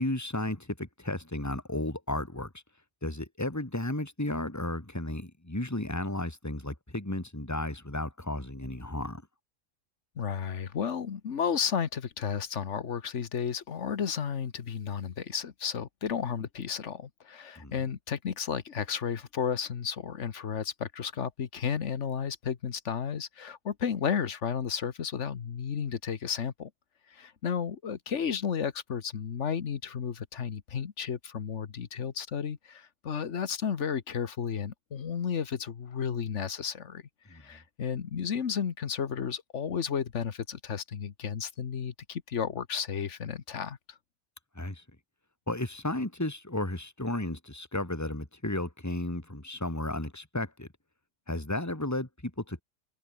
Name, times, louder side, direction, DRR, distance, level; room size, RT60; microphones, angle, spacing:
voice 1, 0.0-2.6 3.0-9.2 17.6-17.7 37.3-37.4 44.5-44.8 45.5-50.7 51.3-52.6, left 1 dB, 15° left, 2.9 m, -33 dB
voice 2, 10.2-26.7 27.1-37.0 37.3-44.0, left 7 dB, 70° left, 1.5 m, -33 dB
omnidirectional pair, 1.3 m